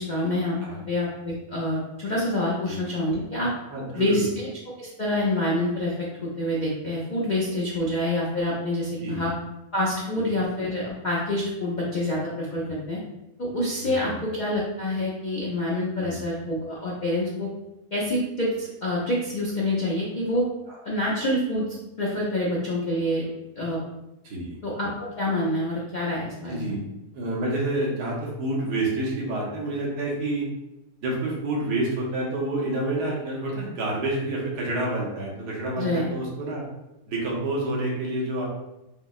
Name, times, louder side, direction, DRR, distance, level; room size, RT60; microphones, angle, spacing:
voice 1, 0.0-0.5 0.9-3.5 3.9-4.3 4.8-5.9 6.2-9.3 9.7-13.0 13.4-17.5 17.9-20.4 20.8-21.7 22.0-23.2 23.6-23.8 24.6-26.7 35.8-36.1, left 1 dB, 80° left, -6 dB, 0.4 m, -27 dB
voice 2, 3.7-4.2 7.8-7.9 9.0-9.3 10.2-10.3 12.6-12.7 13.8-14.2 16.0-16.2 20.7-20.8 24.2-24.5 26.4-26.8 27.1-30.5 31.0-36.6 37.1-38.5, right 2 dB, 80° right, -3 dB, 1.5 m, -28 dB
5.5 x 2.1 x 2.3 m, 0.94 s
omnidirectional pair, 1.7 m